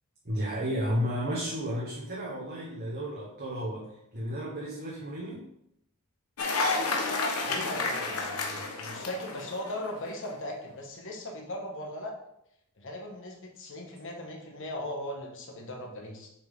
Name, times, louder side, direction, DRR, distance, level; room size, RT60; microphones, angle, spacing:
voice 1, 0.2-5.4, equal, 40° right, -4 dB, 1.3 m, -33 dB
Cheering / Applause, 6.4-10.1, left 3 dB, 80° left, 1.2 m, -31 dB
voice 2, 7.4-12.1 12.8-16.3, left 1 dB, 60° left, 1 dB, 1.5 m, -38 dB
6.8 x 5.9 x 3.7 m, 0.78 s
head